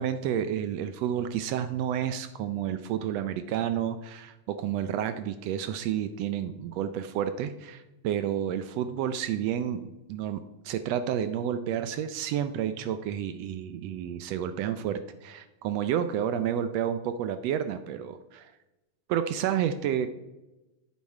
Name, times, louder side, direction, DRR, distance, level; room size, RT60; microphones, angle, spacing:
voice 1, 0.0-18.5 19.1-20.1, right 9 dB, 80° right, 10 dB, 1.6 m, -30 dB
9.7 x 7.4 x 4.7 m, 1.0 s
omnidirectional pair, 3.3 m